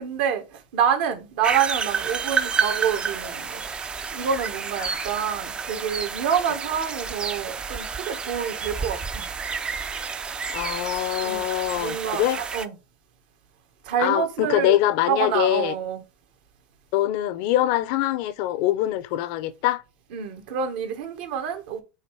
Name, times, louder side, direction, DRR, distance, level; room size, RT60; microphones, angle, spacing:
voice 1, 0.0-3.6 4.1-9.3 11.2-11.5 11.8-12.7 13.8-14.8 15.1-16.0 20.1-21.8, right 7 dB, 70° right, 1.7 m, -27 dB
sound 1, 1.4-12.7, right 6 dB, 20° right, 0.4 m, -30 dB
voice 2, 10.5-12.4 14.0-15.7 16.9-19.8, left 14 dB, 60° left, 0.6 m, -24 dB
5.6 x 3.8 x 4.8 m
supercardioid pair, 135°, 5 cm